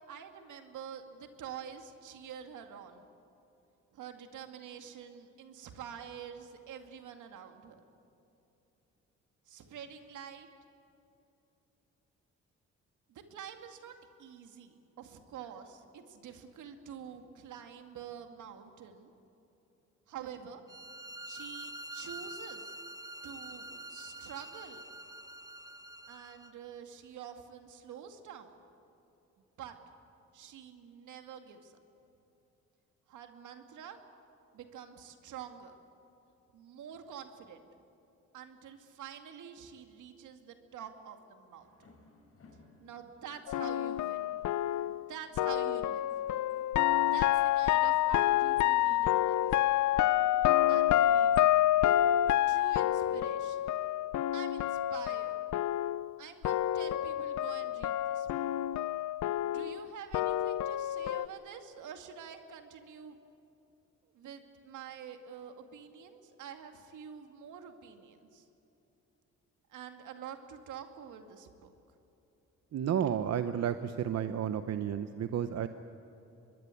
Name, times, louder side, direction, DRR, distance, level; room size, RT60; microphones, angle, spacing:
voice 1, 0.0-3.1 3.9-7.8 9.5-10.5 13.1-19.1 20.1-20.6 21.3-22.7 23.2-24.9 26.1-28.5 29.6-29.8 30.3-31.8 33.1-34.0 34.5-35.8 36.5-37.6 38.3-41.7 42.8-44.3 44.9-46.1 47.0-49.4 50.7-51.7 52.5-53.7 54.3-55.4 56.2-58.5 59.4-63.2 64.1-68.4 69.7-71.7, right 8 dB, 80° right, 6 dB, 2.3 m, -47 dB
sound 1, 20.7-26.5, right 1 dB, 10° right, 0.8 m, -46 dB
sound 2, 41.6-51.5, left 2 dB, 50° left, 7.0 m, -61 dB
sound 3, 43.5-56.2 56.4-61.3, left 13 dB, 70° left, 0.6 m, -28 dB
voice 2, 72.7-75.7, right 9 dB, 60° right, 10 dB, 0.9 m, -32 dB
24.5 x 21.5 x 8.5 m, 2.9 s
cardioid pair, 90°, 30 cm